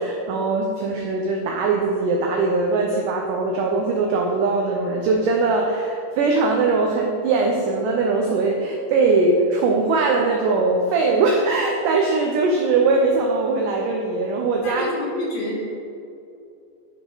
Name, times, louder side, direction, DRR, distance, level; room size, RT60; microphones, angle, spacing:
voice 1, 0.0-14.9, right 3 dB, 85° right, 1 dB, 1.8 m, -21 dB
voice 2, 14.6-15.6, left 2 dB, 65° left, -2 dB, 2.9 m, -28 dB
10.5 x 5.8 x 4.0 m, 2.6 s
omnidirectional pair, 4.6 m